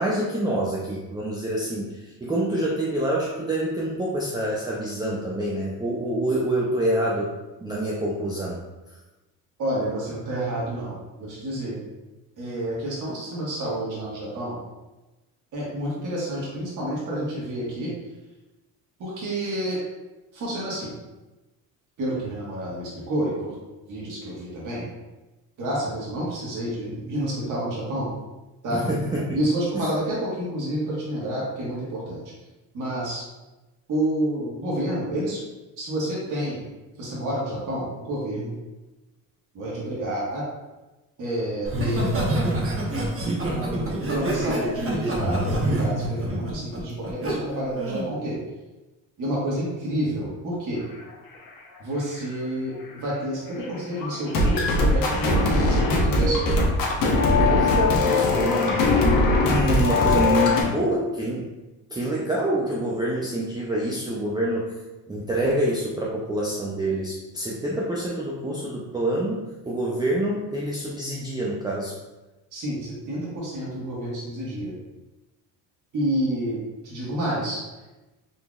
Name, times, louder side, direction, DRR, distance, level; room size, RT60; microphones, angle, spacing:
voice 1, 0.0-7.3 7.6-8.6 28.7-29.4 29.7-29.9 57.4-61.5 61.9-64.7 65.1-71.9, right 1 dB, 10° right, -5 dB, 0.4 m, -26 dB
voice 2, 9.6-11.8 12.4-14.6 15.5-17.9 19.0-19.8 20.3-20.9 22.0-23.5 23.9-24.8 25.6-28.1 28.6-28.8 29.3-32.2 32.7-33.2 33.9-35.4 35.8-36.6 37.0-38.5 39.5-40.4 41.2-42.0 43.5-48.4 49.2-50.8 51.8-56.4 72.5-74.8 75.9-77.6, right 1 dB, 50° right, -7 dB, 1.5 m, -29 dB
Laughter, 41.6-47.3 47.8-48.1, right 1 dB, 35° right, 1.1 m, -26 dB
sound 1, 53.6-53.7 54.0-60.6, left 2 dB, 55° left, 0.9 m, -20 dB
4.1 x 3.3 x 2.3 m, 1.1 s
cardioid pair, 100°, 38 cm